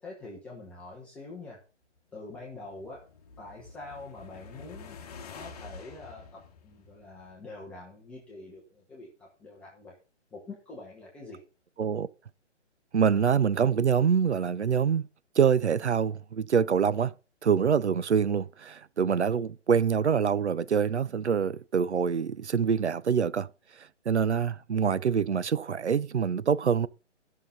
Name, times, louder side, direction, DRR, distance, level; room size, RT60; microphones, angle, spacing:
voice 1, 0.0-1.6 2.1-3.1 3.4-5.0 5.3-10.0 10.3-11.4, left 2 dB, 5° left, 0.8 m, -45 dB
sound 1, 2.1-7.6, left 5 dB, 35° left, 1.2 m, -48 dB
voice 2, 12.9-15.1 15.4-17.1 17.4-23.5 24.1-26.9, right 7 dB, 70° right, 0.6 m, -25 dB
13.0 x 5.9 x 5.2 m
figure-of-eight pair, 140°, 36 cm